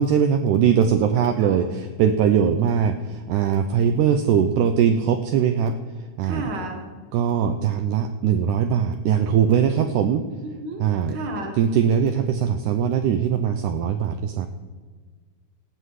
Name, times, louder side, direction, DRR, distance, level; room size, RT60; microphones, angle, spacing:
voice 1, 0.0-6.5 7.1-10.3 10.8-11.2 11.5-14.5, right 8 dB, 80° right, 7 dB, 1.9 m, -21 dB
voice 2, 1.2-1.6 6.2-6.9 10.4-10.8 11.1-11.6, right 2 dB, 40° right, 2 dB, 2.0 m, -33 dB
18.0 x 7.7 x 4.9 m, 1.5 s
omnidirectional pair, 4.1 m